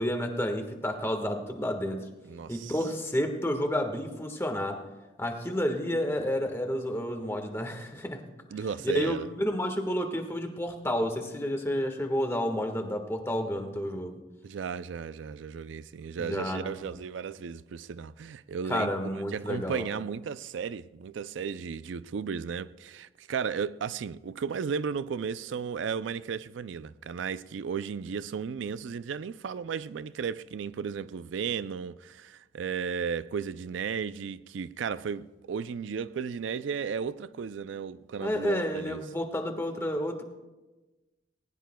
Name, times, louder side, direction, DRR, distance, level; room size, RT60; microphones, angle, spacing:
voice 1, 0.0-2.0 2.5-4.8 5.2-8.2 8.8-14.2 16.2-16.8 18.7-19.9 38.2-40.2, equal, 15° left, 1.4 m, -30 dB
voice 2, 2.3-2.7 8.5-9.3 14.4-39.0, right 6 dB, 75° right, 0.4 m, -34 dB
20.0 x 19.5 x 2.3 m
head